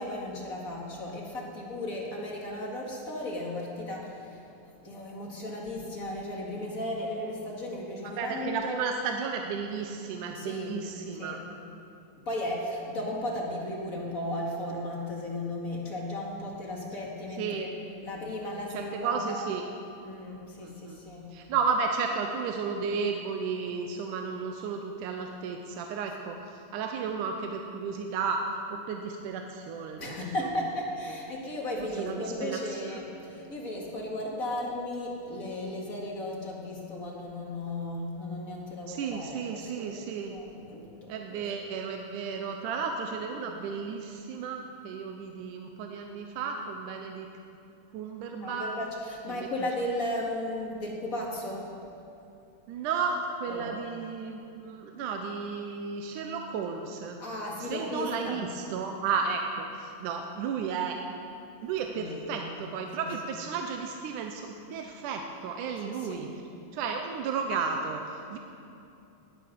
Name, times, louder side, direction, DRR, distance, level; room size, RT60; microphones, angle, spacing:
voice 1, 0.0-4.4 4.8-8.8 10.3-10.8 11.2-11.4 12.2-17.7 18.0-19.5 20.0-21.3 30.0-40.0 40.3-41.4 48.4-51.7 53.5-53.7 57.2-58.5 62.0-62.5 63.0-63.1 65.8-66.3, left 1 dB, 30° left, -2 dB, 1.8 m, -35 dB
voice 2, 8.2-11.4 17.4-17.7 18.7-19.6 20.6-21.0 21.3-28.4 28.7-30.3 31.8-33.0 38.9-40.4 41.1-47.3 47.9-48.7 49.3-49.7 52.7-57.2 57.6-61.0 61.6-66.3 66.7-68.4, right 5 dB, 80° right, 3 dB, 2.3 m, -33 dB
19.0 x 8.8 x 6.3 m, 2.7 s
omnidirectional pair, 3.7 m